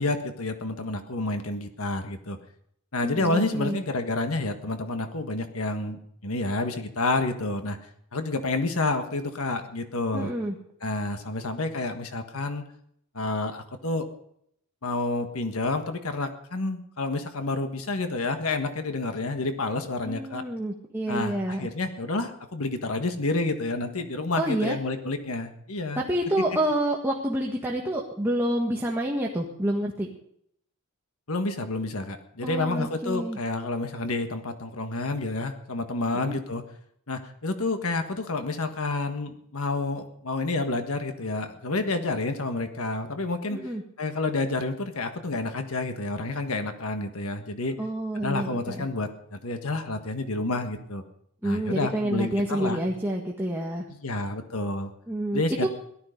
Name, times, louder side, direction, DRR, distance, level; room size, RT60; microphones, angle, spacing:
voice 1, 0.0-2.4 2.9-7.8 8.1-10.3 10.8-12.6 13.1-14.1 14.8-20.5 21.1-26.0 31.3-36.6 37.1-43.6 44.0-47.8 48.2-51.0 51.4-52.8 54.0-54.9 55.3-55.7, left 2 dB, 70° left, 7 dB, 1.5 m, -29 dB
voice 2, 3.0-3.8 10.1-10.6 20.0-21.7 24.4-24.8 25.9-30.1 32.4-33.4 36.2-36.3 43.5-43.8 47.8-48.9 51.4-53.9 55.1-55.7, right 1 dB, 10° right, -2 dB, 1.7 m, -28 dB
17.5 x 13.0 x 5.2 m, 0.70 s
head